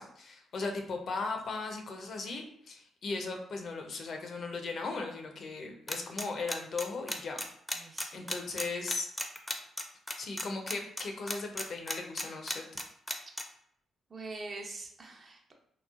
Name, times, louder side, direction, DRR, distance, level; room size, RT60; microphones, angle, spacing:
voice 1, 0.0-7.4 7.7-9.1 10.2-12.6, left 3 dB, 60° left, 3 dB, 0.5 m, -37 dB
sound 1, 5.9-13.4, left 1 dB, 10° left, 0.5 m, -34 dB
voice 2, 7.7-8.3 14.1-15.5, right 3 dB, 45° right, 1 dB, 0.6 m, -44 dB
3.0 x 2.1 x 2.3 m, 0.69 s
hypercardioid pair, 50°, 0 cm